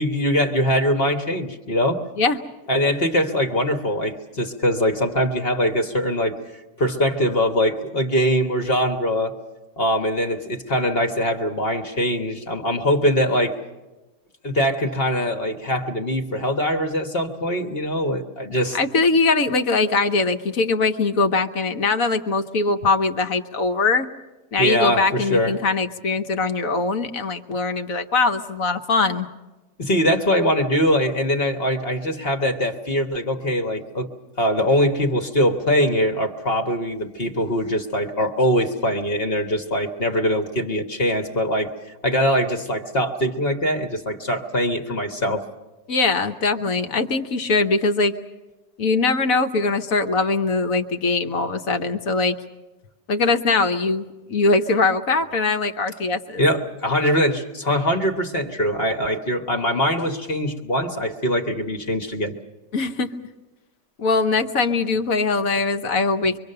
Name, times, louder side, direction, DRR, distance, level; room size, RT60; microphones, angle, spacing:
voice 1, 0.0-2.1 2.7-6.4 6.8-9.4 9.8-13.6 14.4-18.8 24.6-25.5 29.8-34.1 34.4-41.7 42.0-45.5 56.4-62.3, equal, 35° left, 4 dB, 1.4 m, -22 dB
voice 2, 18.7-24.1 24.5-29.3 45.9-48.1 48.8-52.3 53.1-54.0 54.3-56.4 62.7-63.1 64.0-66.4, left 3 dB, 55° left, 7 dB, 1.3 m, -21 dB
25.0 x 24.0 x 6.7 m, 1.1 s
omnidirectional pair, 2.0 m